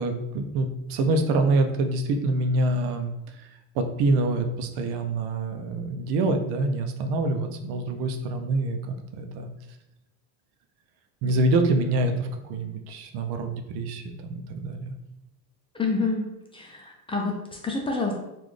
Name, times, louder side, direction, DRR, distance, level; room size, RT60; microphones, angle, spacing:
voice 1, 0.0-9.5 11.2-14.9, right 2 dB, 80° right, 6 dB, 0.6 m, -26 dB
voice 2, 15.7-18.1, left 3 dB, 15° left, 0 dB, 0.4 m, -28 dB
3.9 x 2.5 x 3.2 m, 0.90 s
cardioid pair, 130°, 41 cm